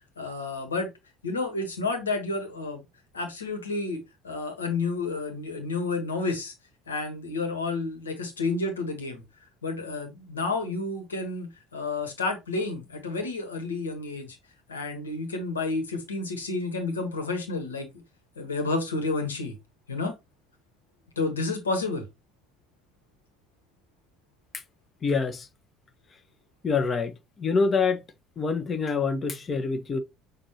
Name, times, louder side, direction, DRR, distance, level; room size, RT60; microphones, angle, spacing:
voice 1, 0.2-0.9 1.2-2.8 3.1-6.5 6.9-9.2 9.6-14.4 14.7-17.9 18.4-19.5 19.9-20.1 21.2-22.0, left 3 dB, 85° left, 1.4 m, -30 dB
voice 2, 25.0-25.5 26.6-28.0 28.4-30.0, left 4 dB, 35° left, 1.0 m, -26 dB
6.5 x 2.6 x 2.9 m
figure-of-eight pair, 60°, 0 cm